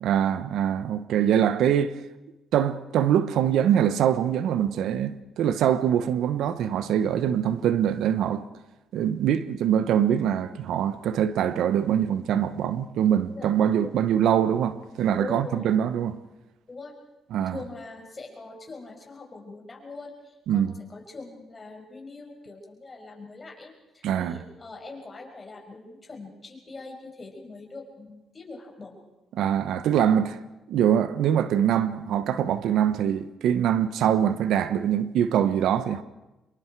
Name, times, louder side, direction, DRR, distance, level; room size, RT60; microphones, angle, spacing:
voice 1, 0.0-1.9 2.5-8.4 8.9-16.2 17.3-17.6 20.5-20.7 24.0-24.4 29.3-30.4 30.7-36.0, right 9 dB, 80° right, 1.0 m, -23 dB
voice 2, 15.2-15.7 16.7-16.9 17.5-29.0, left 3 dB, 30° left, 5.7 m, -42 dB
26.0 x 22.5 x 4.7 m
cardioid pair, 90°, 0 cm